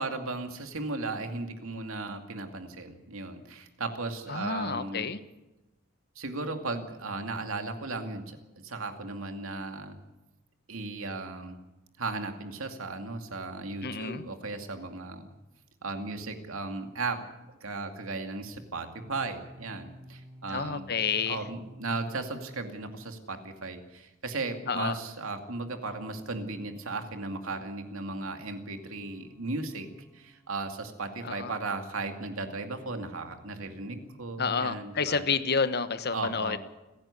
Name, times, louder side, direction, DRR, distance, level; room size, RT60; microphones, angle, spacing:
voice 1, 0.0-5.1 6.2-8.4 8.6-10.0 10.7-11.6 12.0-15.3 15.8-17.2 17.6-20.8 21.3-29.9 30.1-35.2 36.1-36.6, right 3 dB, 80° right, 6 dB, 2.4 m, -36 dB
voice 2, 4.3-5.2 13.8-14.2 20.5-21.4 24.7-25.0 31.2-31.5 34.4-36.6, left 5 dB, 50° left, 12 dB, 1.1 m, -29 dB
sound 1, 19.0-23.3 25.0-30.9 33.0-34.1, right 1 dB, 5° left, 4.6 m, -54 dB
29.5 x 10.5 x 8.5 m, 1.0 s
head